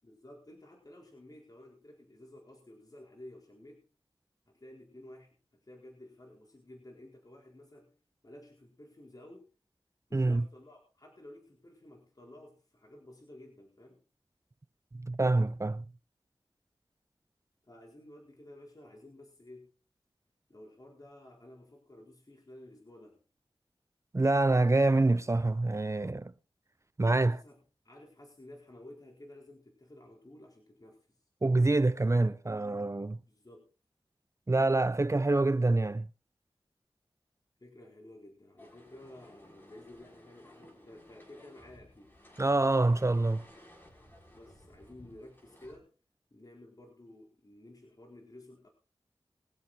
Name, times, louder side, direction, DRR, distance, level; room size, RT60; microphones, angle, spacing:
voice 1, 0.0-3.9 4.5-8.0 8.2-9.5 10.1-14.0 17.7-19.7 20.5-23.2 27.3-31.2 33.3-33.7 37.6-42.2 44.3-45.9 46.3-48.7, left 1 dB, 40° left, 4.5 m, -53 dB
voice 2, 10.1-10.4 14.9-15.8 24.1-26.3 27.0-27.4 31.4-33.2 34.5-36.1 42.4-43.4, right 2 dB, 30° right, 0.6 m, -26 dB
sound 1, 38.6-45.8, left 1 dB, 20° left, 7.3 m, -57 dB
23.0 x 7.8 x 4.4 m
wide cardioid pair, 70°, 9 cm